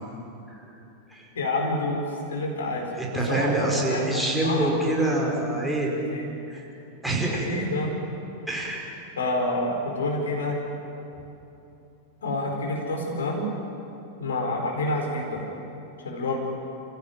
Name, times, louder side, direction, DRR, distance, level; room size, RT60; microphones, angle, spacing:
voice 1, 1.3-2.0 2.3-2.9 3.3-4.7 5.9-6.2 7.3-7.9 9.2-10.6 12.2-13.5 14.2-15.5 16.0-16.4, left 2 dB, 65° left, 1 dB, 4.7 m, -28 dB
voice 2, 3.0-5.9 6.5-6.7 7.0-7.5 8.5-8.8, right 2 dB, 5° right, -3 dB, 5.0 m, -25 dB
29.0 x 16.0 x 9.2 m, 2.9 s
figure-of-eight pair, 90°, 0 cm